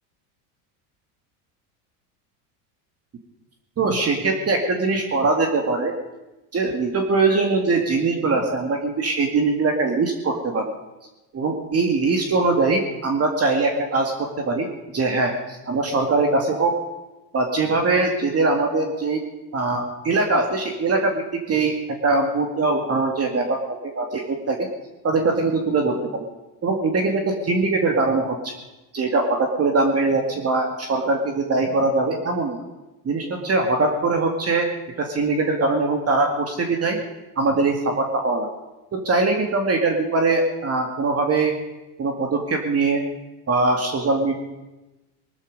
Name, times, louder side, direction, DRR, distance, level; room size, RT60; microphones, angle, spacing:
voice 1, 3.8-5.9 6.5-10.7 11.3-14.7 14.9-16.8 17.3-19.2 19.5-21.8 22.0-24.7 25.0-26.3 26.6-28.5 28.9-32.6 33.0-34.7 35.0-37.0 37.4-38.5 38.9-41.5 42.0-43.0 43.5-44.4, right 3 dB, 30° right, 3 dB, 2.2 m, -22 dB
19.5 x 13.0 x 5.3 m, 1.0 s
supercardioid pair, 110°, 48 cm